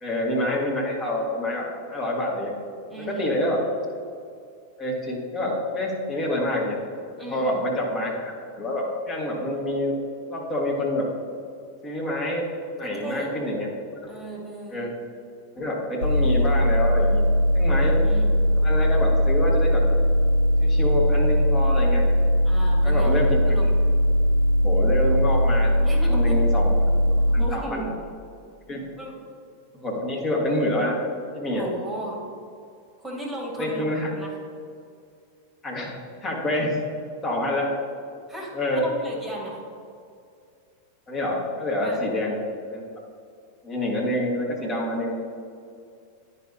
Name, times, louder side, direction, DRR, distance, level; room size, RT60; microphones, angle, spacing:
voice 1, 0.0-2.5 3.0-3.6 4.8-6.8 7.3-9.9 10.3-11.1 11.8-12.5 12.7-13.7 14.7-14.9 15.6-17.2 17.5-18.0 18.6-19.8 20.6-22.0 22.8-23.6 24.6-25.7 26.0-26.7 27.3-27.9 28.7-28.9 29.8-31.0 31.3-31.6 33.6-34.1 35.6-35.9 36.2-36.8 37.2-37.7 38.5-38.8 41.1-42.4 42.7-42.8 43.6-45.2, left 1 dB, 25° left, -3 dB, 1.6 m, -27 dB
voice 2, 2.9-3.4 7.2-7.6 12.8-13.3 14.1-14.8 17.6-18.4 22.4-23.2 23.5-23.7 25.8-26.4 27.3-27.9 29.0-29.2 31.5-32.2 33.0-33.8 34.1-34.3 38.3-39.6 41.8-42.0, right 1 dB, 10° right, -2 dB, 1.7 m, -35 dB
sound 1, 16.0-27.5, equal, 85° left, 1.0 m, -20 dB
9.9 x 5.4 x 2.8 m, 2.3 s
figure-of-eight pair, 90°, 0 cm